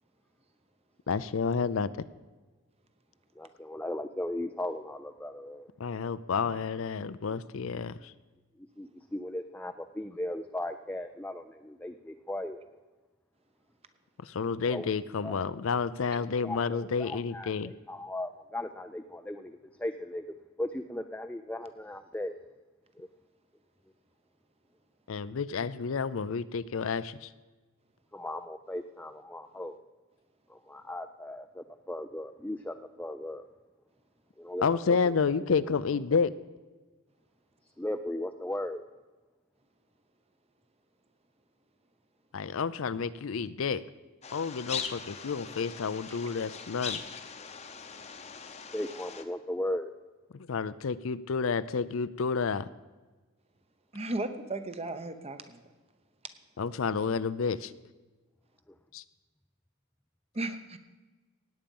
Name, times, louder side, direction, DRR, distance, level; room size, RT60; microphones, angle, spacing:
voice 1, 1.1-2.1 5.8-8.1 14.2-17.7 25.1-27.3 34.6-36.3 42.3-43.8 44.3-47.0 50.3-52.7 56.6-57.7, left 5 dB, 70° left, 15 dB, 0.5 m, -30 dB
voice 2, 3.4-5.7 8.6-12.6 14.7-14.9 15.2-15.4 16.2-20.3 20.6-22.4 23.0-23.1 28.1-29.8 30.5-33.5 34.4-35.5 37.6-38.8 48.7-49.9, left 1 dB, 5° left, 6 dB, 0.4 m, -37 dB
sound 1, 44.2-49.2, left 6 dB, 30° left, 0.8 m, -40 dB
voice 3, 53.9-55.6 60.3-60.8, right 2 dB, 30° right, 9 dB, 0.8 m, -35 dB
17.0 x 8.9 x 5.4 m, 1.3 s
head